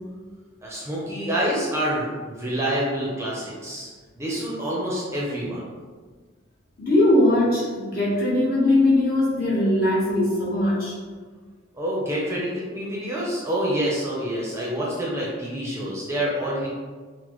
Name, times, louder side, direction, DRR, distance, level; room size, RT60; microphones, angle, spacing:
voice 1, 0.6-3.9 4.2-5.7 11.7-16.7, equal, 15° right, -6 dB, 0.6 m, -27 dB
voice 2, 6.8-10.9, left 1 dB, 45° left, -7 dB, 1.2 m, -20 dB
6.0 x 2.1 x 3.0 m, 1.5 s
head